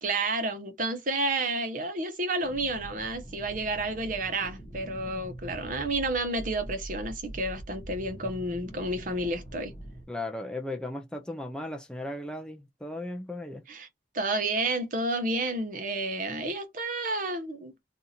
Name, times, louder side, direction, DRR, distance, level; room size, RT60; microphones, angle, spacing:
voice 1, 0.0-9.7 13.7-13.9 14.1-17.7, right 2 dB, 45° right, 0.9 m, -30 dB
sound 1, 2.4-10.0, right 1 dB, 30° left, 0.9 m, -43 dB
voice 2, 10.1-13.6, left 1 dB, 5° left, 0.4 m, -36 dB
2.7 x 2.4 x 4.1 m
head